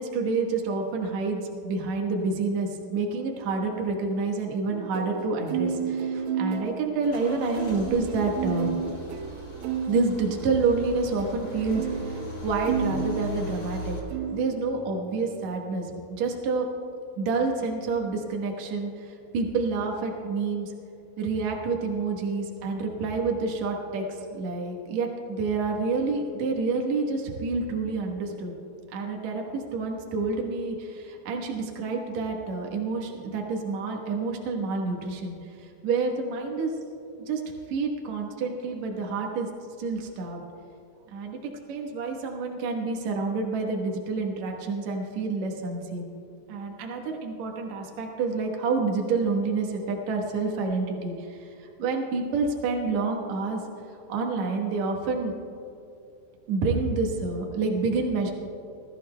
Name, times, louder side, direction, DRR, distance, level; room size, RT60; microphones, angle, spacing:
voice 1, 0.0-8.7 9.9-14.0 14.3-16.7 17.2-20.7 21.2-28.5 28.9-36.7 37.3-37.4 37.7-39.5 39.8-40.4 41.1-46.1 46.5-53.6 54.1-55.3 56.5-58.3, right 4 dB, 65° right, 1 dB, 1.8 m, -28 dB
sound 1, 4.7-13.8 14.1-14.6, right 7 dB, 80° right, 2.7 m, -32 dB
Car / Engine starting / Idling, 6.2-14.0, left 1 dB, 35° left, 1.7 m, -39 dB
Bowed string instrument, 11.4-15.6, right 4 dB, 55° left, 3.0 m, -44 dB
21.5 x 14.5 x 2.3 m, 2.7 s
omnidirectional pair, 5.0 m